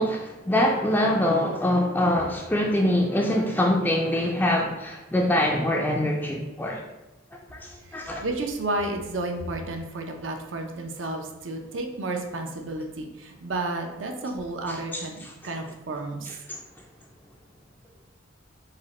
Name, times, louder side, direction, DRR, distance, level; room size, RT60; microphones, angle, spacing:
voice 1, 0.0-6.8 7.5-8.2 14.7-14.8 15.2-15.3 16.5-16.6, left 1 dB, 10° left, -1 dB, 0.3 m, -24 dB
voice 2, 7.8-16.4, right 2 dB, 75° right, 3 dB, 0.6 m, -32 dB
5.0 x 2.1 x 4.1 m, 1.0 s
head